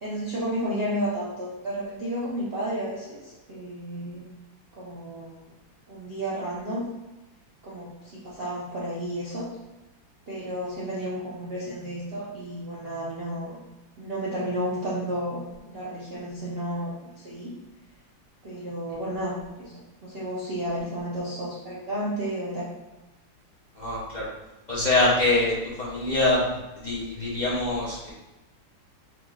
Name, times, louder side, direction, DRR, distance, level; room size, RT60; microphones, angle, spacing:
voice 1, 0.0-4.3 4.8-5.5 5.9-6.8 7.6-9.5 10.3-13.6 14.0-17.5 18.4-22.7, equal, 65° right, -7 dB, 0.6 m, -32 dB
voice 2, 23.7-24.2 24.7-26.4 26.8-28.1, left 2 dB, 55° left, -8 dB, 0.5 m, -24 dB
4.8 x 3.2 x 2.3 m, 1.0 s
omnidirectional pair, 2.1 m